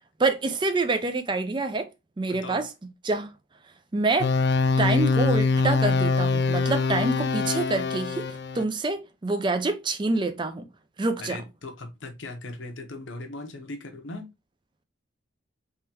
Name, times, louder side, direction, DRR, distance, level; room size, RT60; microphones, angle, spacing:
voice 1, 0.2-1.9 2.2-2.7 3.0-3.3 3.9-4.3 4.8-10.6 11.0-11.4, right 3 dB, 25° right, 0.4 m, -26 dB
voice 2, 2.3-2.6 11.2-14.2, left 2 dB, 70° left, 0.8 m, -38 dB
sound 1, 4.2-8.6, left 4 dB, 55° left, 0.4 m, -23 dB
3.6 x 3.3 x 2.8 m
head